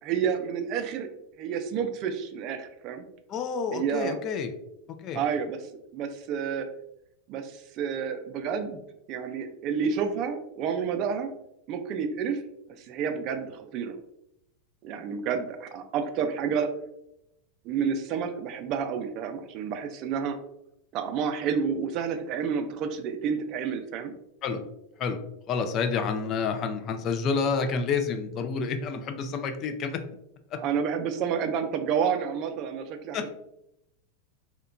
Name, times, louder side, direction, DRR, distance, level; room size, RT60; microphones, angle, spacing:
voice 1, 0.0-1.1 1.4-3.0 3.7-4.2 5.1-5.6 5.9-6.7 7.3-8.8 9.1-11.3 11.7-12.4 12.8-13.9 14.8-16.7 17.6-20.4 20.9-24.1 30.6-33.3, right 7 dB, 45° right, 7 dB, 0.3 m, -30 dB
voice 2, 3.3-4.5 4.9-5.2 24.4-24.6 25.0-25.2 25.5-30.0 30.5-30.6 33.1-33.3, left 5 dB, 35° left, 8 dB, 0.3 m, -29 dB
2.8 x 2.1 x 2.4 m, 0.82 s
supercardioid pair, 130°, 0 cm